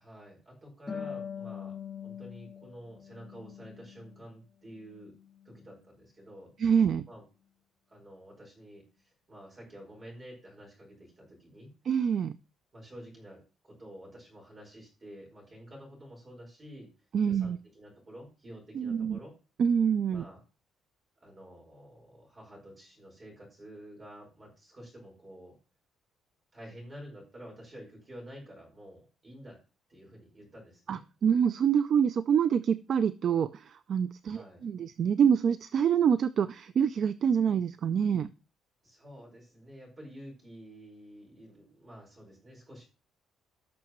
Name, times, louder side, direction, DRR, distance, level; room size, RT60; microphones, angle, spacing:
voice 1, 0.0-5.1 5.4-6.5 7.1-7.2 7.9-11.7 12.7-16.9 17.2-19.3 20.1-20.4 21.2-25.6 26.5-29.6 29.9-31.0 34.2-34.6 38.8-42.9, equal, 20° right, -1 dB, 4.7 m, -50 dB
Harp, 0.9-4.3 4.6-5.7, left 7 dB, 15° left, 3.0 m, -43 dB
voice 2, 6.6-7.1 11.9-12.4 17.1-17.6 18.7-19.2 19.6-20.2 30.9-38.3, right 7 dB, 40° right, 13 dB, 0.4 m, -26 dB
18.5 x 6.3 x 3.0 m, 0.34 s
cardioid pair, 175°, 0 cm